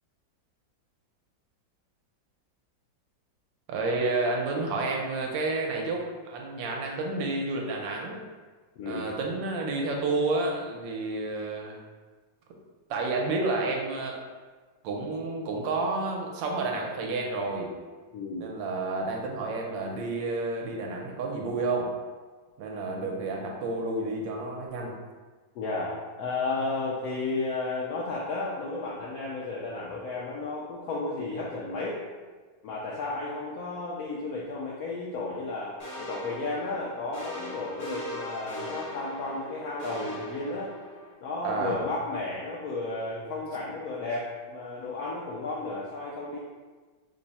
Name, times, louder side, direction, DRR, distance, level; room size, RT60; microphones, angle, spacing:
voice 1, 3.7-8.2 8.9-11.8 12.9-14.2 14.8-17.7 18.4-21.9 22.6-24.9 41.4-41.8, right 3 dB, 80° right, 0 dB, 1.2 m, -30 dB
voice 2, 8.8-9.1 18.1-18.5 25.5-32.0 32.6-40.7 41.2-46.4, left 3 dB, 80° left, -5 dB, 0.8 m, -33 dB
sound 1, 35.8-41.1, left 1 dB, 45° left, 0.6 m, -40 dB
3.5 x 2.0 x 4.0 m, 1.4 s
omnidirectional pair, 2.1 m